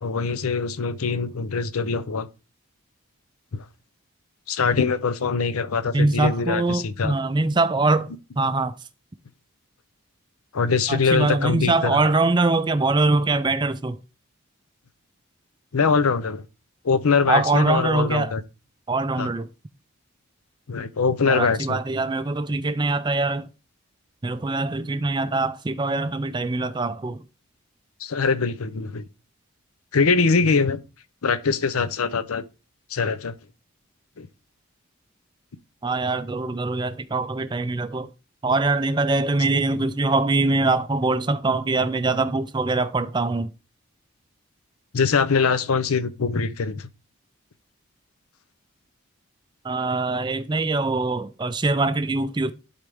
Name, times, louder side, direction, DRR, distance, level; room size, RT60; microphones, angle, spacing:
voice 1, 0.0-2.3 3.5-3.7 4.5-7.2 10.5-12.0 15.7-16.4 16.8-18.4 19.2-19.3 20.7-21.8 28.0-29.1 29.9-30.8 31.2-32.4 32.9-33.4 34.2-34.3 44.9-46.9, left 5 dB, 75° left, 0.6 m, -23 dB
voice 2, 5.9-8.7 10.9-14.0 17.3-18.3 18.9-19.5 21.3-23.5 24.2-27.2 35.8-38.1 38.4-43.5 49.6-52.5, right 3 dB, 20° right, 0.4 m, -23 dB
11.5 x 4.0 x 3.5 m
head